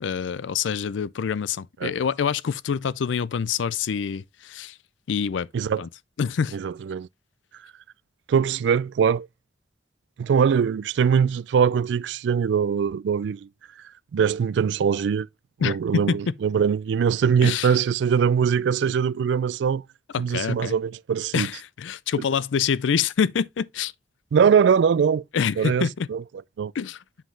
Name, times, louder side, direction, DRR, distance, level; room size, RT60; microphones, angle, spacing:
voice 1, 0.0-4.8 5.1-5.5 5.8-5.9 6.2-6.6 15.6-16.2 17.4-17.8 20.1-20.7 21.3-23.9 25.3-26.1 26.7-27.0, left 6 dB, 85° left, 0.4 m, -26 dB
voice 2, 6.5-7.1 8.3-9.3 10.2-13.5 14.1-15.3 15.6-19.8 20.2-21.5 24.3-25.2 25.6-26.2 26.6-26.7, right 7 dB, 75° right, 0.3 m, -22 dB
7.4 x 5.7 x 3.2 m
head